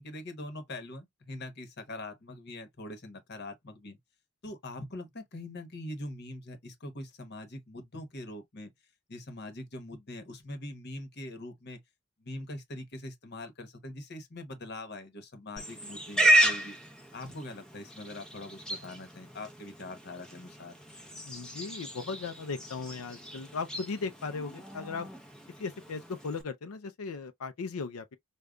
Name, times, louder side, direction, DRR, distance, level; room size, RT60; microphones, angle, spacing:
voice 1, 0.0-4.0 4.4-8.7 9.1-11.8 12.2-16.7 17.1-20.7, left 1 dB, 50° left, 1.0 m, -43 dB
Livestock farm animals working animals, 15.6-26.4, right 1 dB, 5° left, 0.6 m, -32 dB
voice 2, 21.2-25.1 25.6-28.2, left 4 dB, 80° left, 0.5 m, -37 dB
5.0 x 2.2 x 2.3 m
head